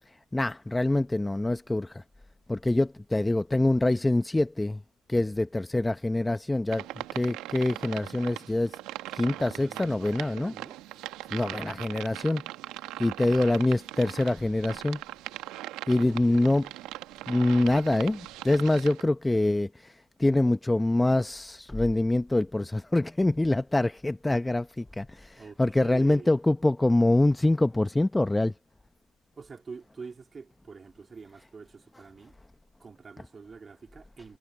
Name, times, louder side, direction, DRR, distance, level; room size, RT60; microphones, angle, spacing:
voice 1, 0.1-2.0 2.5-4.8 5.1-8.8 9.1-10.5 11.3-12.4 13.0-15.0 15.9-16.7 17.3-28.5, left 2 dB, 10° left, 0.7 m, -25 dB
sound 1, 6.7-19.0, right 16 dB, 75° right, 1.3 m, -40 dB
voice 2, 9.1-10.8 16.0-16.6 25.3-26.3 29.4-32.3 32.8-34.4, right 5 dB, 30° right, 2.5 m, -46 dB
supercardioid pair, 80°, 0 cm